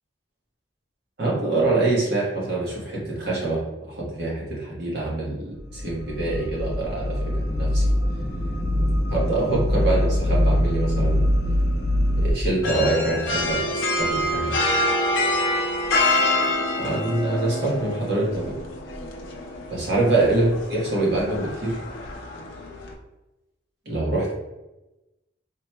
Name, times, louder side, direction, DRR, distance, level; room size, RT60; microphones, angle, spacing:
voice 1, 1.2-3.6 3.9-7.9 9.1-11.3 12.2-14.5 16.8-18.6 19.7-21.8 23.8-24.3, right 2 dB, 60° right, -5 dB, 1.3 m, -25 dB
sound 1, 5.5-12.3, left 1 dB, 15° left, 0.6 m, -23 dB
sound 2, 12.6-22.9, left 1 dB, 80° left, 0.6 m, -26 dB
3.8 x 3.0 x 2.2 m, 1.0 s
head